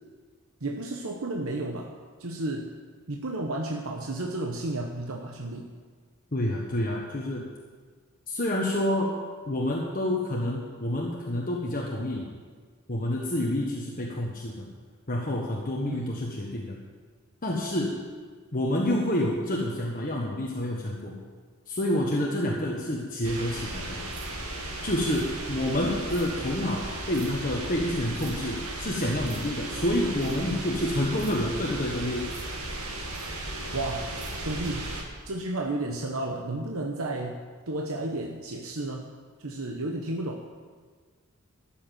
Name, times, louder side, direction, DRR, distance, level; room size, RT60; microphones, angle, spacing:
voice 1, 0.6-1.9 2.2-2.7 3.1-5.7 15.8-16.1 33.7-34.1 34.4-34.9 35.2-37.4 37.7-39.0 39.4-40.4, right 2 dB, 70° right, 1 dB, 1.1 m, -32 dB
voice 2, 6.3-7.4 8.3-9.1 9.5-12.3 12.9-14.6 15.1-16.8 17.4-18.0 18.5-21.1 21.7-24.0 24.8-32.3, left 1 dB, 40° left, -1 dB, 1.4 m, -28 dB
sound 1, 23.2-35.0, right 2 dB, 85° right, 2.3 m, -36 dB
13.0 x 7.4 x 9.2 m, 1.5 s
head